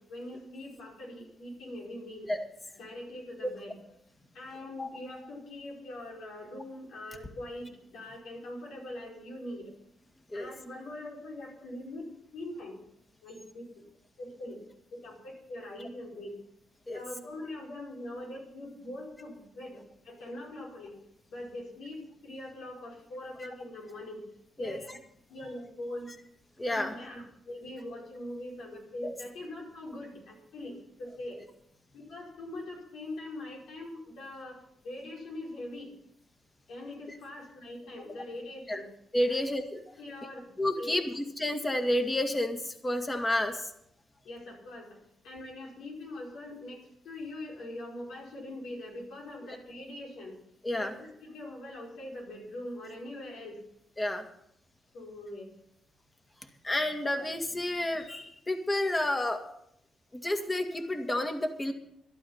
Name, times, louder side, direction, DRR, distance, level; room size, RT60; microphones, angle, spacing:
voice 1, 0.0-2.3 2.7-3.8 4.3-9.7 10.3-12.8 13.2-13.8 14.2-14.6 14.9-16.4 16.9-21.0 21.3-24.2 24.5-25.0 25.3-26.1 26.7-31.4 31.9-35.9 36.7-38.9 39.3-39.4 40.0-41.1 44.2-45.0 45.2-50.4 50.7-53.6 54.9-55.5, left 1 dB, 80° left, -2 dB, 5.1 m, -42 dB
voice 2, 26.6-26.9 29.0-29.1 38.7-38.8 39.1-39.8 40.6-43.7 50.6-50.9 54.0-54.3 56.6-59.4 60.1-61.7, left 1 dB, 20° left, 5 dB, 2.1 m, -30 dB
12.5 x 12.0 x 5.8 m, 0.73 s
cardioid pair, 80°, 0 cm